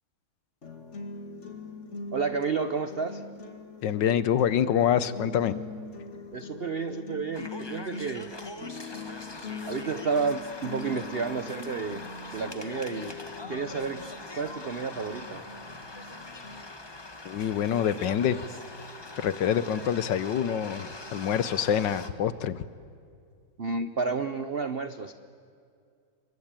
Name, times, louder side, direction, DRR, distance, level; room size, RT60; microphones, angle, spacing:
sound 1, 0.6-16.6, left 3 dB, 35° left, 2.6 m, -42 dB
voice 1, 2.1-3.2 6.3-8.3 9.7-12.0 12.3-13.2 13.5-14.0 14.3-15.4 23.6-25.1, right 4 dB, 70° right, 11 dB, 0.5 m, -31 dB
voice 2, 3.8-5.6 17.2-18.4 19.2-22.6, left 9 dB, 65° left, 15 dB, 1.4 m, -26 dB
sound 2, 7.3-22.1, left 2 dB, 15° left, 0.9 m, -43 dB
28.0 x 23.5 x 8.9 m, 2.3 s
omnidirectional pair, 2.2 m